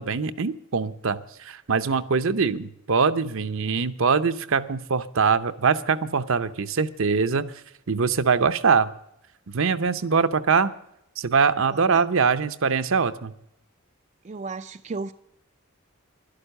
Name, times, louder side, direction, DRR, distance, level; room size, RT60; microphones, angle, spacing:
voice 1, 0.0-7.5 7.9-8.9 9.5-10.7 11.2-13.3, right 5 dB, 65° right, 0.7 m, -23 dB
voice 2, 11.7-12.0 14.2-15.1, right 3 dB, 35° right, 0.4 m, -34 dB
12.0 x 11.5 x 6.6 m
head